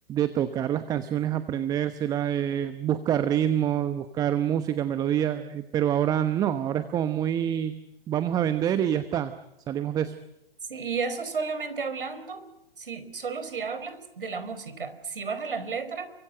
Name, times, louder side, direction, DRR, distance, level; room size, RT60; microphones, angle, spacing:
voice 1, 0.1-7.7 8.1-9.3 9.7-10.1, right 10 dB, 15° right, 12 dB, 1.0 m, -26 dB
voice 2, 10.7-12.4 12.8-16.1, right 5 dB, 65° right, 12 dB, 4.8 m, -33 dB
30.0 x 24.0 x 7.9 m, 0.89 s
figure-of-eight pair, 125°, 29 cm